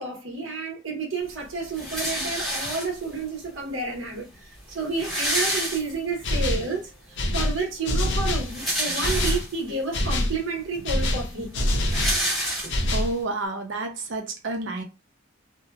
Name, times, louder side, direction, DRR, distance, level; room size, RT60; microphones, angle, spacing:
voice 1, 0.0-11.6, right 3 dB, 85° right, 1.0 m, -30 dB
sound 1, 1.7-3.2 4.0-4.1 4.3-4.4 4.7-6.3 6.7-6.8 8.2-9.8 10.4-10.5 10.8-13.1, equal, ahead, 0.9 m, -28 dB
sound 2, 6.2-6.7 7.2-8.5 9.0-9.4 9.9-10.4 10.8-12.2 12.7-13.2, left 1 dB, 60° left, 0.5 m, -25 dB
voice 2, 12.9-14.8, right 2 dB, 60° right, 0.6 m, -30 dB
2.7 x 2.1 x 2.3 m
head